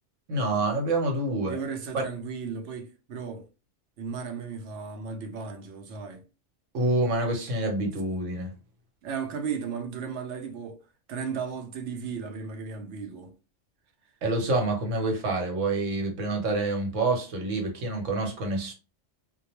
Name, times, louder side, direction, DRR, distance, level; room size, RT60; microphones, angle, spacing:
voice 1, 0.3-1.6 1.9-2.0 6.7-8.5 14.2-18.7, right 2 dB, 90° right, 1.2 m, -27 dB
voice 2, 1.5-3.5 4.0-6.2 9.0-10.8 11.1-13.3, right 6 dB, 75° right, 0.9 m, -35 dB
2.2 x 2.2 x 2.9 m
omnidirectional pair, 1.3 m